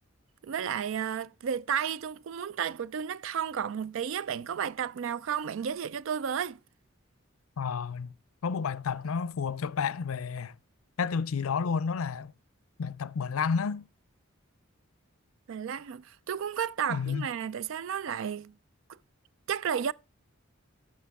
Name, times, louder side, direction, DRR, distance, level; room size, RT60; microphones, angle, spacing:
voice 1, 0.4-6.6 15.5-18.5 19.5-19.9, right 8 dB, 65° right, 0.4 m, -32 dB
voice 2, 7.6-8.1 8.4-10.6 11.0-12.3 12.8-13.9 16.9-17.3, left 6 dB, 85° left, 0.5 m, -31 dB
11.0 x 6.6 x 3.5 m
head